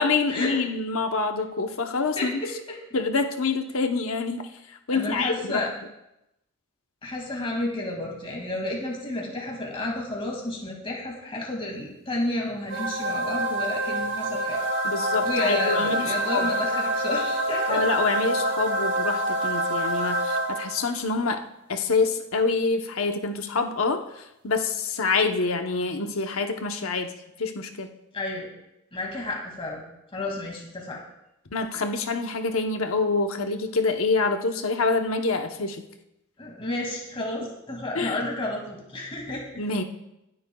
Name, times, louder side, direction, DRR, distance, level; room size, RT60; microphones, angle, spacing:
voice 1, 0.0-2.4 2.9-4.4 4.7-5.7 14.8-16.5 17.7-21.4 21.7-27.1 27.4-27.9 31.5-35.8 37.9-38.2 39.6-39.8, left 4 dB, 65° left, 5 dB, 1.0 m, -26 dB
voice 2, 2.2-2.5 4.9-5.7 7.0-14.6 15.2-17.8 28.1-28.5 28.9-29.8 30.1-31.0 36.4-39.6, left 2 dB, 25° left, -1 dB, 2.3 m, -31 dB
sound 1, 12.7-21.0, right 1 dB, 55° right, 1.9 m, -26 dB
25.0 x 8.4 x 2.3 m, 0.88 s
head